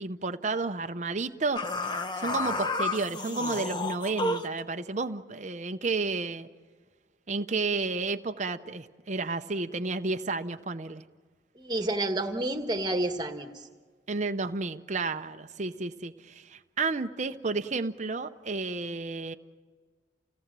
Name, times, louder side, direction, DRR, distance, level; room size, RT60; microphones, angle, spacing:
voice 1, 0.0-6.5 7.3-11.0 14.1-19.3, right 3 dB, 40° right, 8 dB, 0.7 m, -32 dB
sound 1, 1.6-4.6, left 2 dB, 25° left, 0.9 m, -31 dB
voice 2, 11.5-13.7, right 1 dB, 20° right, 6 dB, 1.5 m, -30 dB
29.5 x 17.5 x 7.5 m, 1.5 s
head